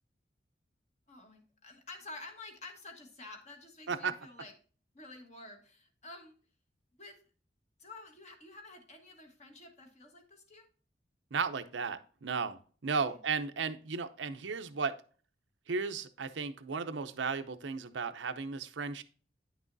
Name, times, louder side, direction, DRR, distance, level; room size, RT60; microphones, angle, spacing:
voice 1, 1.1-4.5 4.9-6.4 7.0-7.2 7.8-10.7 13.0-13.2, left 2 dB, 40° left, 4 dB, 1.3 m, -50 dB
voice 2, 11.3-15.0 15.7-19.0, right 5 dB, 90° right, 10 dB, 0.6 m, -35 dB
9.4 x 6.1 x 2.6 m, 0.41 s
head